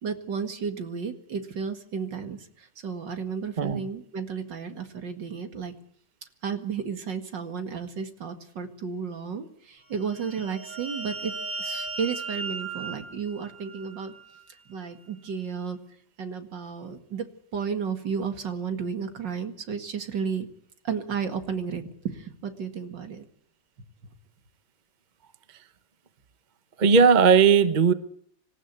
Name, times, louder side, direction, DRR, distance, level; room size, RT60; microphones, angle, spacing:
voice 1, 0.0-5.7 6.4-11.3 11.6-14.1 14.7-15.8 16.2-20.5 20.8-23.3, right 6 dB, 75° right, 8 dB, 2.7 m, -33 dB
sound 1, 10.0-14.5, right 4 dB, 50° right, 3.5 m, -37 dB
voice 2, 26.8-27.9, right 6 dB, 30° right, 12 dB, 1.1 m, -17 dB
26.5 x 15.0 x 8.4 m, 0.64 s
omnidirectional pair, 2.0 m